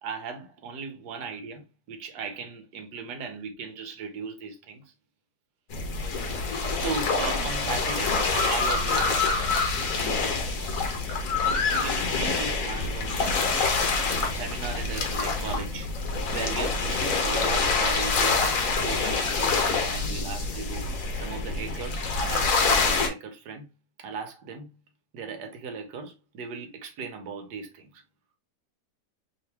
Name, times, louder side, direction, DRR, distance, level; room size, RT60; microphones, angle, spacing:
voice 1, 0.0-4.8 6.5-9.2 11.4-13.4 13.9-15.9 16.3-23.7 24.0-24.7 25.1-28.0, right 5 dB, 75° right, 1.4 m, -37 dB
sound 1, 5.7-23.1, left 4 dB, 60° left, 1.1 m, -26 dB
3.2 x 2.9 x 3.2 m
omnidirectional pair, 1.8 m